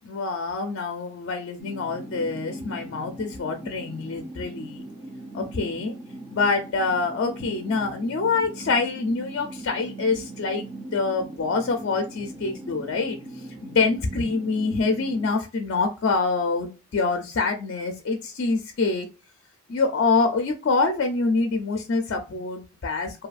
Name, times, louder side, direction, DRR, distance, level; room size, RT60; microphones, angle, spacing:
voice 1, 0.0-4.8 5.3-5.9 6.3-10.6 10.9-13.2 13.6-19.1 19.7-23.3, left 4 dB, 50° left, 5 dB, 0.4 m, -25 dB
sound 1, 1.6-15.3, right 2 dB, 15° right, 0.4 m, -40 dB
2.7 x 2.4 x 2.3 m, 0.30 s
head